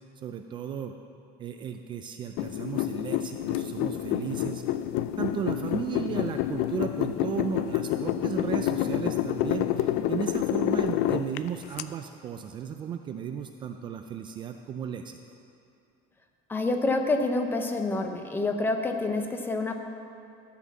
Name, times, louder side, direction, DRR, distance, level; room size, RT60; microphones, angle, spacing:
voice 1, 0.2-0.9 1.4-4.6 5.2-15.2, right 8 dB, 30° right, 6 dB, 0.3 m, -35 dB
sound 1, 2.4-11.8, left 12 dB, 75° left, 0.4 m, -28 dB
voice 2, 16.5-19.7, left 2 dB, 10° left, 5 dB, 0.6 m, -27 dB
13.5 x 5.8 x 7.2 m, 2.5 s
cardioid pair, 180°, 17 cm